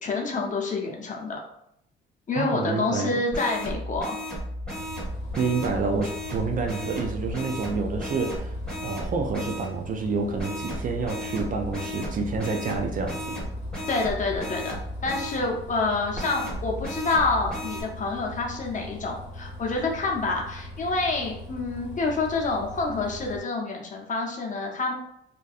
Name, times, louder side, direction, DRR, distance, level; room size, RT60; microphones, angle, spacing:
voice 1, 0.0-1.4 2.3-4.2 13.9-14.8 15.0-24.9, left 3 dB, 40° left, 0 dB, 0.6 m, -27 dB
voice 2, 2.4-3.1 5.4-8.5 8.8-13.4, right 4 dB, 45° right, 3 dB, 0.4 m, -28 dB
sound 1, 3.3-9.7 10.4-15.4 16.1-17.8, equal, 5° left, 1.2 m, -34 dB
Bus, 4.7-23.4, left 1 dB, 75° left, 0.8 m, -41 dB
2.6 x 2.2 x 2.3 m, 0.75 s
cardioid pair, 90°, 20 cm